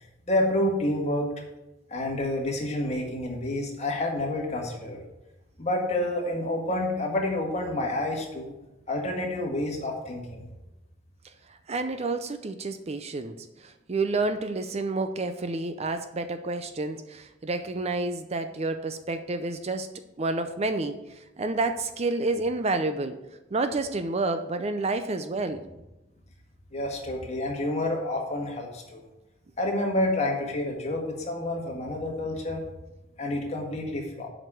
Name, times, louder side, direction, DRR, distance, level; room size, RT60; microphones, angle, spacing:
voice 1, 0.3-1.3 1.9-5.0 5.6-8.5 8.9-10.4 26.7-29.0 29.6-32.6 33.2-34.3, left 1 dB, 35° left, 0 dB, 1.8 m, -29 dB
voice 2, 11.5-23.2 23.5-25.6, right 3 dB, 35° right, 9 dB, 0.5 m, -29 dB
7.6 x 5.1 x 7.4 m, 0.96 s
head